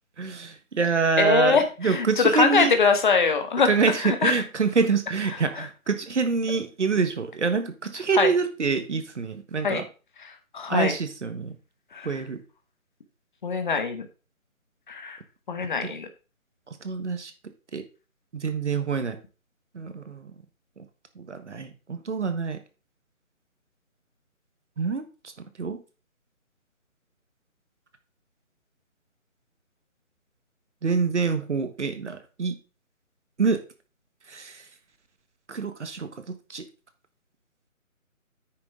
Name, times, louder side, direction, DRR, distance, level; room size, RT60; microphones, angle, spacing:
voice 1, 0.2-2.7 3.6-9.8 10.7-11.5 12.0-12.4 16.8-17.3 17.7-17.8 18.3-19.2 19.7-20.2 21.2-22.6 24.8-25.0 25.6-25.8 30.8-32.5 33.4-33.6 34.3-34.6 35.5-36.1 36.5-36.6, right 5 dB, 55° right, 9 dB, 1.5 m, -26 dB
voice 2, 1.2-3.7 4.0-4.4 5.5-5.6 8.1-8.3 9.6-9.8 10.5-11.0 11.9-12.2 13.4-14.1 14.9-15.2 15.5-16.1, left 5 dB, 35° left, 6 dB, 1.4 m, -23 dB
9.5 x 6.5 x 3.7 m, 0.33 s
figure-of-eight pair, 155°, 42 cm